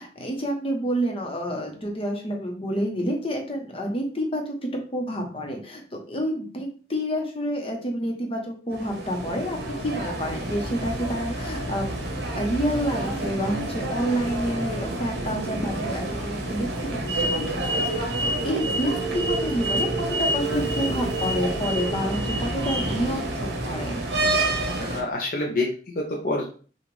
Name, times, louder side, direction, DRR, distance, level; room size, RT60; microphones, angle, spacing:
voice 1, 0.0-16.7 16.9-18.2 18.4-23.9, equal, 35° left, 2 dB, 1.0 m, -29 dB
sound 1, 8.7-25.0, right 1 dB, 70° right, 1.2 m, -28 dB
voice 2, 24.8-26.5, left 2 dB, 55° left, 0 dB, 0.6 m, -27 dB
6.0 x 2.5 x 3.3 m, 0.40 s
head